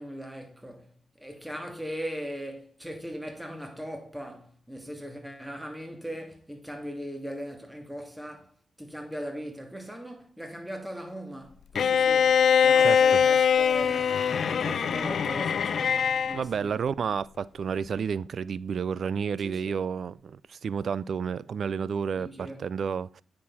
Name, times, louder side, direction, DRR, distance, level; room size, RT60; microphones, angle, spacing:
voice 1, 0.0-16.9 19.4-19.8 22.2-22.7, equal, 5° right, 2.6 m, -39 dB
Bowed string instrument, 11.8-16.4, left 7 dB, 70° left, 0.4 m, -22 dB
voice 2, 12.8-13.2 16.3-23.2, right 6 dB, 65° right, 0.4 m, -31 dB
8.7 x 6.6 x 4.1 m
cardioid pair, 55°, 0 cm